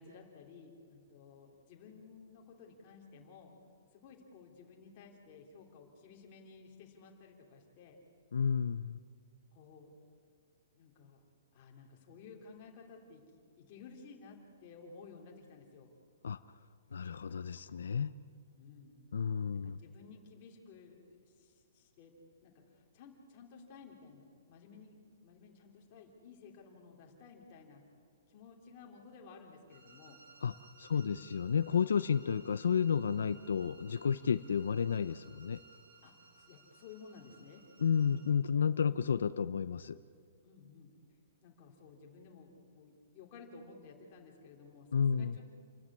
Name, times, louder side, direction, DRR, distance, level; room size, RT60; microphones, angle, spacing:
voice 1, 0.0-3.5 3.9-8.0 9.5-9.9 10.8-11.2 11.5-15.9 18.5-19.0 19.5-22.1 22.4-27.8 28.3-30.2 30.9-31.2 34.3-34.5 36.0-37.6 40.4-40.9 41.4-45.5, left 5 dB, 25° left, 0 dB, 3.0 m, -55 dB
voice 2, 8.3-9.0 16.2-16.4 16.9-18.2 19.1-19.8 30.4-35.6 37.8-40.0 44.9-45.4, left 7 dB, 85° left, 13 dB, 0.6 m, -31 dB
sound 1, 29.7-38.4, right 4 dB, 65° right, 6.9 m, -60 dB
28.5 x 13.5 x 9.8 m, 2.2 s
hypercardioid pair, 175°, 0 cm